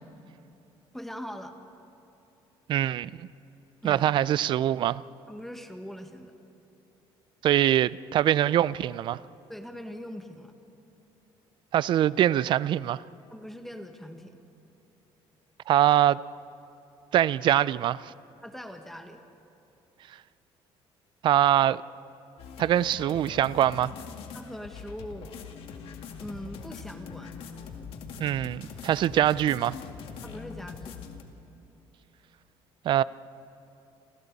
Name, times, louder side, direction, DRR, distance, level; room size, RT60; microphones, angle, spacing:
voice 1, 0.9-1.5 3.8-4.1 5.3-6.3 9.5-10.5 13.3-14.4 18.4-19.2 24.3-25.3 26.2-27.4 30.2-31.0, equal, 5° left, 1.5 m, -41 dB
voice 2, 2.7-3.3 3.8-5.0 7.4-9.2 11.7-13.0 15.7-16.2 17.1-18.1 21.2-21.8 22.6-23.9 28.2-29.8 32.8-33.0, right 12 dB, 50° right, 0.4 m, -23 dB
sound 1, 22.4-31.2, left 6 dB, 65° left, 2.2 m, -42 dB
30.0 x 26.5 x 4.1 m
cardioid pair, 135°, 10 cm